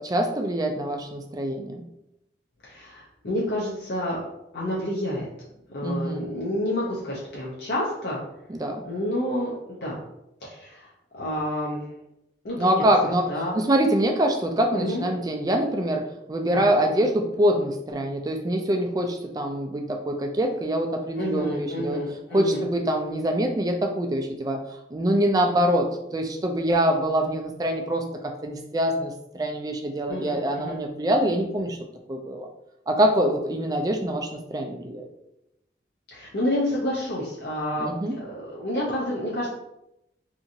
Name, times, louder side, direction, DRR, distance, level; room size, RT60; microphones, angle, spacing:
voice 1, 0.0-1.8 5.8-6.2 8.5-8.8 12.6-13.3 13.5-22.0 22.3-24.6 24.9-25.9 26.1-28.0 28.4-31.8 32.1-32.5 32.9-35.1 37.8-38.2, right 1 dB, 20° right, 3 dB, 0.3 m, -24 dB
voice 2, 2.6-4.2 4.5-5.3 5.7-8.2 8.8-10.0 10.4-10.9 11.1-11.9 12.4-13.6 14.7-15.1 16.5-16.6 21.2-22.7 30.1-30.8 36.1-37.9 38.2-39.5, left 1 dB, 65° left, -5 dB, 0.6 m, -29 dB
2.8 x 2.5 x 2.6 m, 0.85 s
head